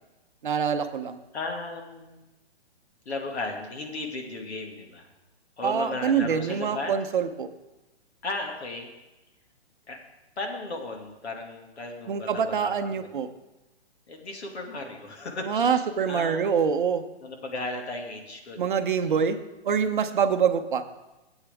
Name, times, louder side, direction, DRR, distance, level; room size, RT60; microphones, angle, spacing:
voice 1, 0.4-1.2 5.6-7.5 12.1-13.3 15.4-17.0 18.6-19.4 19.6-20.8, right 7 dB, 50° right, 8 dB, 0.7 m, -25 dB
voice 2, 1.3-2.2 3.1-5.1 5.6-6.9 8.2-8.9 9.9-10.0 10.4-13.1 14.1-16.4 17.2-19.3, left 2 dB, 75° left, 2 dB, 2.2 m, -35 dB
15.5 x 8.1 x 3.5 m, 1.0 s
hypercardioid pair, 170°, 33 cm